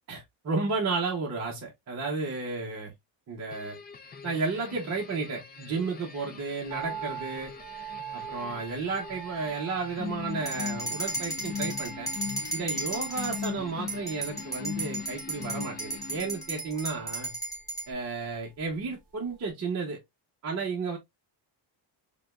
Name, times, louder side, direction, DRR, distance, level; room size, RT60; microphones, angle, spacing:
voice 1, 0.1-2.9 3.3-3.8 4.2-7.5 8.1-12.1 12.5-17.3 17.9-20.0 20.4-21.0, right 4 dB, 35° right, 0.8 m, -32 dB
sound 1, 3.5-16.7, left 7 dB, 25° left, 0.3 m, -40 dB
sound 2, 6.7-19.0 19.2-19.3, right 9 dB, 15° right, 1.4 m, -45 dB
sound 3, 10.5-13.5 13.9-17.9, right 2 dB, 5° left, 1.2 m, -35 dB
4.9 x 2.3 x 2.2 m
cardioid pair, 155°, 48 cm